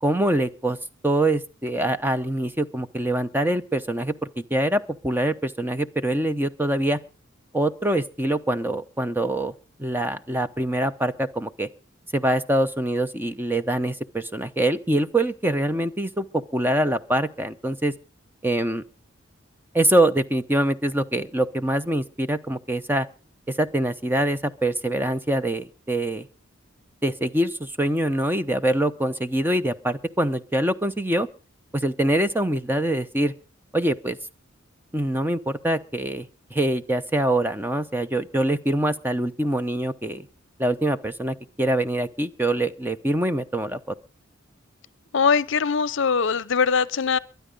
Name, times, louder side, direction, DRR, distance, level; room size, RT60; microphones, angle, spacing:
voice 1, 0.0-0.8 1.0-7.0 7.5-9.5 9.8-11.7 12.1-16.3 16.5-17.9 18.4-18.8 19.7-23.1 23.5-26.3 27.0-31.3 31.7-33.3 33.7-34.2 34.9-40.3 40.6-43.9, right 1 dB, 10° right, 0.7 m, -24 dB
voice 2, 45.1-47.2, left 5 dB, 65° left, 0.6 m, -21 dB
23.0 x 9.4 x 5.3 m
head